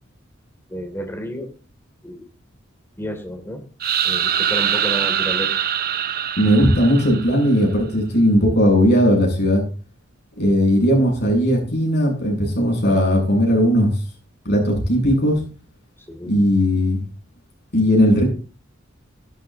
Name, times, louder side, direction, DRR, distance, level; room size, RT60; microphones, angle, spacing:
voice 1, 0.7-1.5 2.0-2.3 3.0-3.6 4.0-5.5 16.0-16.3, equal, 10° left, 3 dB, 2.9 m, -31 dB
sound 1, 3.8-7.6, right 9 dB, 50° right, 0.7 m, -23 dB
voice 2, 6.4-9.6 10.4-14.0 14.4-15.4 16.2-17.0 17.7-18.3, equal, 55° left, -1 dB, 7.9 m, -17 dB
16.5 x 13.0 x 3.0 m, 0.36 s
head